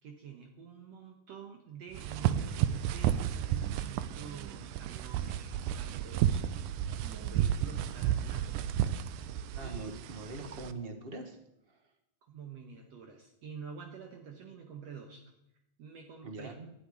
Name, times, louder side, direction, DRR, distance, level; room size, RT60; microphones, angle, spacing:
voice 1, 0.0-6.4 7.0-8.5 9.6-9.9 12.2-15.3 15.8-16.6, right 6 dB, 65° right, 2 dB, 2.2 m, -48 dB
sound 1, 1.9-10.7, right 10 dB, 85° right, 2.2 m, -32 dB
voice 2, 9.5-11.4 11.7-11.8 16.2-16.7, right 2 dB, 40° right, 5 dB, 0.8 m, -42 dB
12.5 x 6.8 x 9.6 m, 0.83 s
omnidirectional pair, 3.5 m